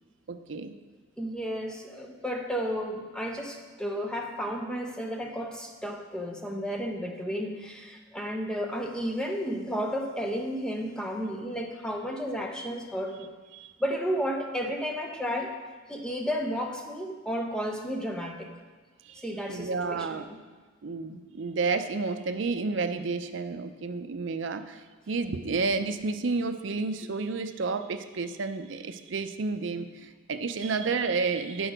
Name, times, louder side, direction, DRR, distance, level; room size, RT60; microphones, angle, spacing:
voice 1, 0.3-0.8 13.5-13.7 19.0-19.2 19.5-20.3 20.8-31.7, right 4 dB, 65° right, 8 dB, 0.5 m, -31 dB
voice 2, 1.2-13.3 13.8-15.5 15.9-18.5 19.2-20.4, equal, 5° left, 2 dB, 0.7 m, -32 dB
8.9 x 6.2 x 5.0 m, 1.4 s
head